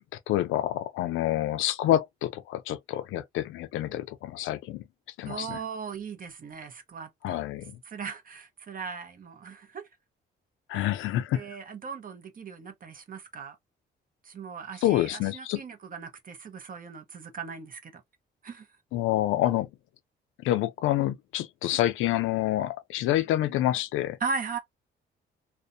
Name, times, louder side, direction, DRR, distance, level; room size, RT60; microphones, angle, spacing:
voice 1, 0.3-4.8 5.2-5.6 7.2-7.8 10.7-11.5 14.8-15.6 18.9-19.7 20.4-24.2, left 13 dB, 85° left, 0.4 m, -27 dB
voice 2, 5.3-7.4 7.9-9.9 10.7-10.9 11.3-13.6 14.2-18.0 18.4-18.7 24.2-24.6, right 5 dB, 45° right, 0.8 m, -38 dB
2.4 x 2.1 x 2.6 m
cardioid pair, 90°, 20 cm